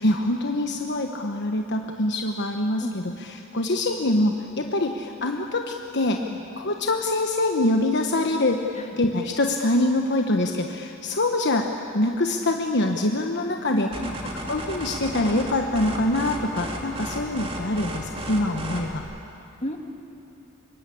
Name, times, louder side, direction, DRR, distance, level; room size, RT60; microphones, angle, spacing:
voice 1, 0.0-3.0 3.5-6.2 6.6-8.7 9.0-13.9 14.4-19.1, left 1 dB, 55° left, 3 dB, 1.2 m, -24 dB
voice 2, 13.7-14.3 19.6-19.8, equal, 35° left, 4 dB, 2.2 m, -32 dB
sound 1, 13.9-19.0, right 1 dB, 30° right, 2.9 m, -34 dB
25.0 x 23.0 x 8.6 m, 2.7 s
head